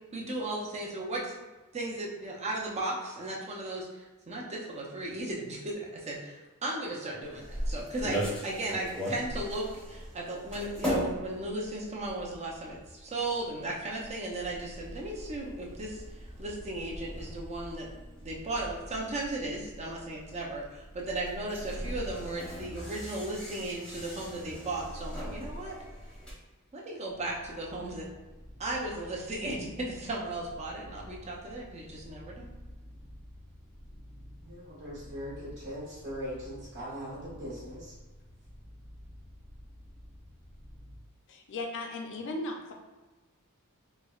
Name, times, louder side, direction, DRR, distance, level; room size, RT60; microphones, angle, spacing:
voice 1, 0.1-1.3 1.7-16.0 16.4-17.9 18.2-25.8 26.7-28.1 28.6-32.5, right 2 dB, 30° right, -2 dB, 0.6 m, -36 dB
sound 1, 7.2-26.3, equal, 5° left, 0.8 m, -39 dB
sound 2, 27.1-41.0, equal, 75° right, 1.2 m, -50 dB
voice 2, 34.4-37.9, equal, 55° right, -7 dB, 1.5 m, -40 dB
voice 3, 41.3-42.7, left 2 dB, 60° left, 2 dB, 0.5 m, -36 dB
4.4 x 2.1 x 2.3 m, 1.2 s
head